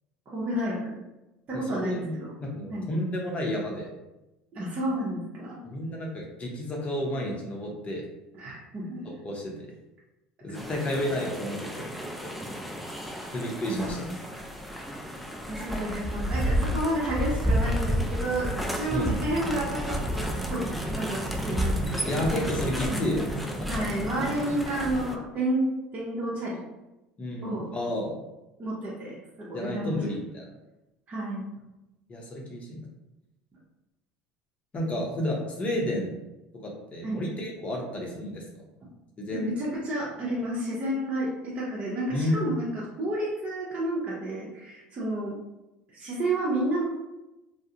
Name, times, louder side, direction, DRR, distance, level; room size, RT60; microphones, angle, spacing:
voice 1, 0.3-1.0 1.5-2.3 2.7-2.9 4.5-5.6 8.3-9.0 13.7-14.2 15.5-20.6 20.9-22.1 22.9-23.1 23.7-25.6 25.9-26.6 27.4-27.7 28.6-30.0 31.1-31.5 37.0-37.2 38.8-38.9 39.3-45.3 45.9-46.8, right 1 dB, 40° right, -7 dB, 0.8 m, -31 dB
voice 2, 1.5-2.1 2.4-3.9 5.6-8.0 9.0-9.5 10.4-12.0 12.2-12.3 13.3-14.1 18.9-19.2 22.0-23.9 27.2-28.1 29.5-30.5 32.1-32.9 34.7-36.1 36.5-38.4 39.2-39.5 42.1-42.5, left 1 dB, 35° left, -1 dB, 0.8 m, -31 dB
sound 1, 10.5-25.2, equal, ahead, 0.4 m, -31 dB
2.3 x 2.1 x 2.8 m, 0.99 s
hypercardioid pair, 85°, 4 cm